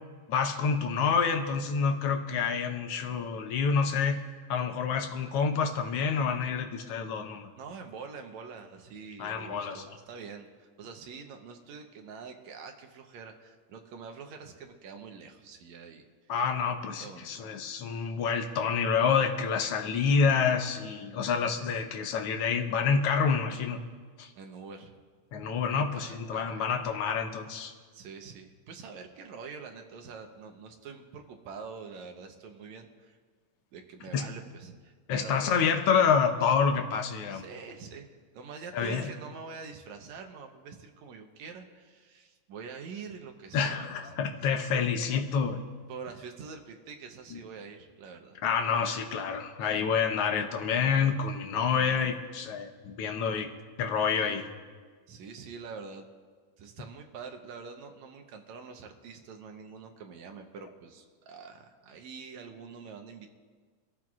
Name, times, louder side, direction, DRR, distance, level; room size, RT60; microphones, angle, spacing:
voice 1, 0.3-7.5 9.2-9.8 16.3-23.8 24.2-24.3 25.3-27.7 34.1-34.3 35.1-37.4 38.7-39.1 43.5-45.6 47.3-47.4 48.4-53.5 53.8-54.4, left 6 dB, 70° left, 3 dB, 1.4 m, -28 dB
voice 2, 7.6-16.1 17.0-17.4 21.5-21.8 24.4-25.0 25.9-26.7 27.9-33.2 33.7-35.6 37.3-38.1 38.3-44.1 44.7-44.9 45.9-48.4 51.8-52.1 55.1-56.1 56.6-63.3, right 5 dB, 70° right, 4 dB, 2.1 m, -45 dB
25.5 x 13.5 x 2.4 m, 1.5 s
omnidirectional pair, 3.6 m